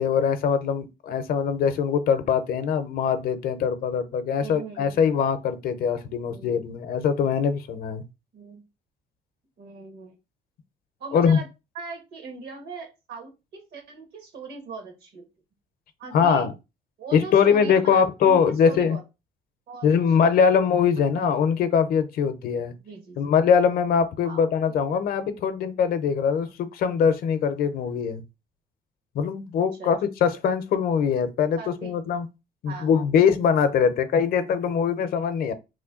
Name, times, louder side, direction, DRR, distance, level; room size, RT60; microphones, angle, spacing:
voice 1, 0.0-8.0 11.1-11.4 16.1-16.5 17.1-19.0 19.8-22.7 23.2-28.2 29.1-32.3 32.6-35.5, left 7 dB, 60° left, 0.6 m, -22 dB
voice 2, 4.4-5.1 6.3-6.6 8.3-8.6 9.6-10.2 11.0-11.5 11.7-15.3 16.0-16.5 17.0-19.0 19.7-20.6 21.0-21.3 22.8-23.3 24.2-24.7 29.6-30.0 31.5-32.0 32.7-32.9, right 4 dB, 70° right, 1.3 m, -40 dB
3.1 x 2.2 x 3.6 m
cardioid pair, 110°, 17 cm